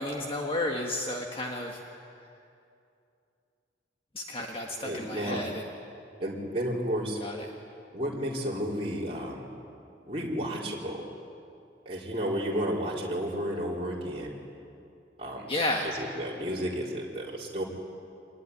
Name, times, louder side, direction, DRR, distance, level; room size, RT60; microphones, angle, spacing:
voice 1, 0.0-1.8 4.1-5.6 7.2-7.4 15.5-15.9, left 1 dB, 30° left, 0 dB, 1.7 m, -32 dB
voice 2, 4.8-5.4 6.2-7.2 7.9-9.5 10.1-11.1 11.9-14.3 15.2-15.5 15.8-17.6, equal, 30° right, -4 dB, 4.2 m, -32 dB
26.0 x 20.0 x 9.8 m, 2.6 s
head